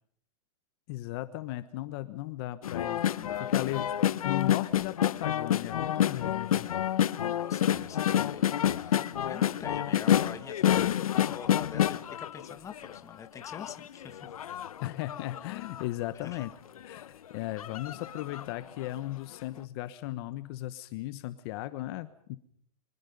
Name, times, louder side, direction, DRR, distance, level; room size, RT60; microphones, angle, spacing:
voice 1, 0.9-3.2 3.5-3.9 4.2-6.7 14.8-16.5 16.8-22.4, left 16 dB, 45° left, 12 dB, 1.2 m, -36 dB
sound 1, 2.6-13.0 13.4-15.8 16.4-16.5 16.8-17.0 17.6-18.5 18.9-19.0, left 10 dB, 85° left, 0.9 m, -28 dB
voice 2, 3.1-3.8 7.4-8.5 8.8-14.3 16.1-16.5, left 7 dB, 15° left, 9 dB, 1.6 m, -45 dB
29.0 x 25.0 x 5.4 m, 0.64 s
hypercardioid pair, 140°, 18 cm